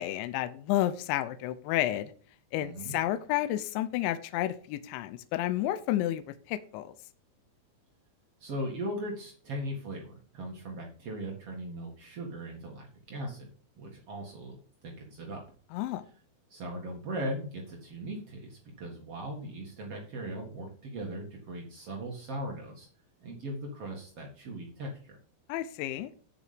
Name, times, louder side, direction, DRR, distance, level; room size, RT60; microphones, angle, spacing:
voice 1, 0.0-2.1 2.5-6.2 6.5-6.9 15.7-16.0 25.5-26.1, left 14 dB, 80° left, 12 dB, 2.7 m, -31 dB
voice 2, 2.6-3.0 8.4-13.5 13.8-15.4 16.5-22.9 23.2-25.1, right 1 dB, 75° right, 0 dB, 1.4 m, -39 dB
9.3 x 6.9 x 5.1 m, 0.43 s
omnidirectional pair, 5.9 m